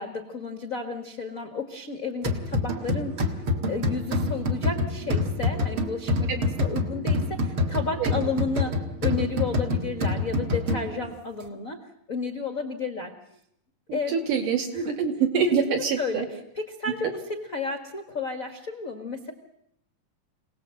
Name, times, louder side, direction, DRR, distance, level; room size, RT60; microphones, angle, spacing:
voice 1, 0.0-3.3 3.7-11.8 12.1-13.1 13.9-14.2 14.7-15.0 15.7-19.3, left 4 dB, 50° left, 5 dB, 1.0 m, -32 dB
sound 1, 2.2-11.1, left 2 dB, 45° right, 2.0 m, -27 dB
voice 2, 13.9-16.3, right 6 dB, 65° right, 2 dB, 4.1 m, -25 dB
26.5 x 18.5 x 7.7 m, 0.76 s
omnidirectional pair, 4.1 m